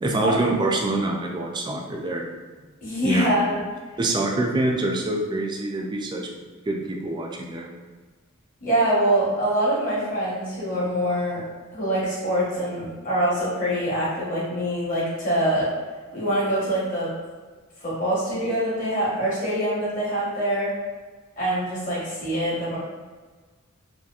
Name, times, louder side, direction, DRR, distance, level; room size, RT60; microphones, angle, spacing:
voice 1, 0.0-2.2 3.0-3.3 4.0-6.2 6.7-7.7, right 2 dB, 20° right, 0 dB, 0.3 m, -25 dB
voice 2, 2.8-3.6 8.6-11.4 11.7-15.7 16.1-17.1 17.8-20.7 21.4-22.8, right 1 dB, 40° left, -7 dB, 1.0 m, -24 dB
2.7 x 2.5 x 2.3 m, 1.4 s
head